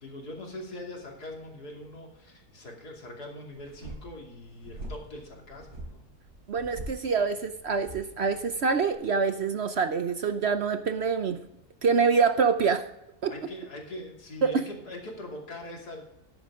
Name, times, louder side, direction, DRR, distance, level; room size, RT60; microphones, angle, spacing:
voice 1, 0.0-6.1 13.3-16.0, left 1 dB, 90° left, 0 dB, 3.1 m, -42 dB
sound 1, 3.5-8.9, right 1 dB, 80° right, 4.4 m, -44 dB
voice 2, 6.5-11.4 11.8-12.8 13.2-13.3 14.4-14.5, right 5 dB, 55° right, 8 dB, 0.8 m, -25 dB
13.5 x 10.5 x 3.6 m, 0.83 s
omnidirectional pair, 1.6 m